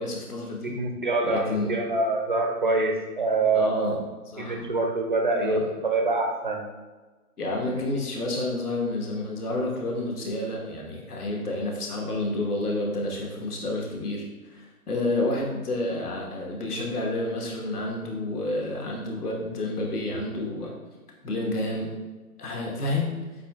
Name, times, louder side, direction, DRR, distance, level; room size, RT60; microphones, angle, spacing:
voice 1, 0.0-0.7 1.2-1.7 3.5-4.0 4.3-4.7 5.4-5.6 7.4-20.7 21.2-21.9 22.4-23.2, left 2 dB, 80° left, -1 dB, 1.4 m, -29 dB
voice 2, 0.6-4.0 4.4-6.6, right 3 dB, 35° right, 2 dB, 0.4 m, -25 dB
8.1 x 2.7 x 2.3 m, 1.2 s
hypercardioid pair, 150°, 45 cm